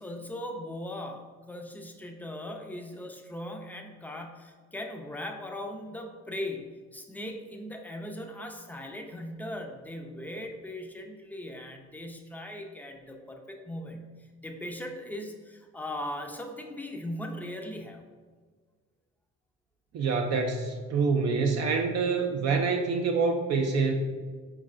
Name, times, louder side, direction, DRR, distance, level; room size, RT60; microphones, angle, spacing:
voice 1, 0.0-14.1 14.4-18.0, left 1 dB, 5° left, 3 dB, 0.4 m, -39 dB
voice 2, 19.9-23.9, right 4 dB, 60° right, 3 dB, 0.4 m, -26 dB
4.7 x 3.2 x 2.4 m, 1.5 s
cardioid pair, 90°, 30 cm